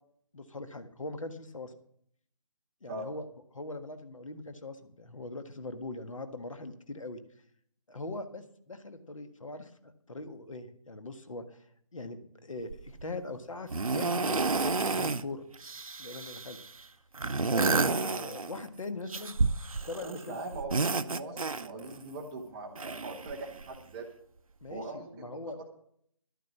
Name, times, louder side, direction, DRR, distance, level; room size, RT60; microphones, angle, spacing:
voice 1, 0.3-1.7 2.8-3.2 3.5-7.2 7.9-11.6 11.9-15.4 16.0-16.6 17.4-19.4 19.7-20.6 24.6-25.6, left 2 dB, 65° left, 8 dB, 1.6 m, -41 dB
sound 1, 12.7-13.0 13.7-15.2 15.5-16.7 17.1-18.7 19.1-20.2 20.5-22.0 22.7-23.8 24.7-24.8, right 4 dB, 80° right, 0.7 m, -30 dB
voice 2, 20.0-24.1 24.7-25.4, right 2 dB, 5° right, 0 dB, 0.5 m, -41 dB
12.0 x 9.1 x 6.1 m, 0.66 s
figure-of-eight pair, 155°, 18 cm